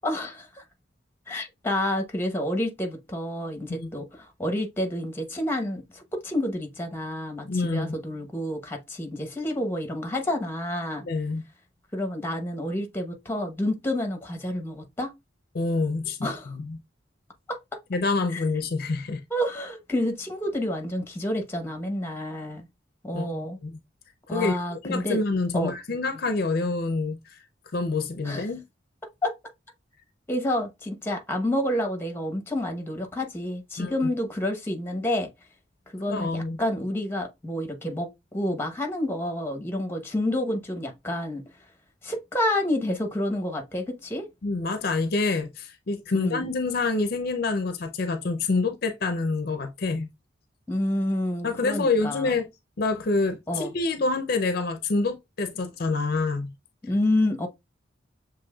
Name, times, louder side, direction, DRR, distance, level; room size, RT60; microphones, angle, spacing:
voice 1, 0.0-0.6 1.3-11.1 11.9-15.1 16.2-16.5 17.5-17.6 18.3-18.4 19.3-22.7 23.0-23.6 24.3-25.2 25.5-25.7 28.2-28.5 29.2-29.3 30.3-35.3 35.9-41.4 42.0-44.2 46.1-46.5 50.7-52.3 53.5-53.7 56.8-57.5, left 1 dB, 10° left, 0.9 m, -29 dB
voice 2, 7.4-7.9 11.0-11.4 15.5-16.8 17.9-19.2 23.1-23.8 24.3-24.6 24.8-27.4 27.7-28.6 33.8-33.9 36.1-36.6 44.4-50.1 51.4-52.5 52.8-56.5, left 3 dB, 55° left, 0.5 m, -27 dB
6.9 x 3.0 x 2.3 m
head